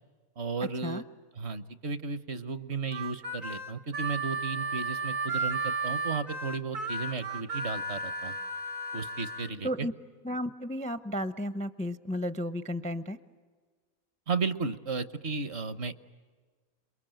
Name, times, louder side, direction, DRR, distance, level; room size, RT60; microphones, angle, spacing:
voice 1, 0.4-1.0 1.4-8.4 8.9-9.9 14.3-15.9, right 4 dB, 55° right, 12 dB, 1.2 m, -34 dB
Harmonica, 2.9-9.5, right 3 dB, 70° right, 2.0 m, -34 dB
voice 2, 10.2-13.2, equal, 10° left, 11 dB, 0.5 m, -33 dB
28.5 x 22.5 x 9.1 m, 1.5 s
omnidirectional pair, 1.5 m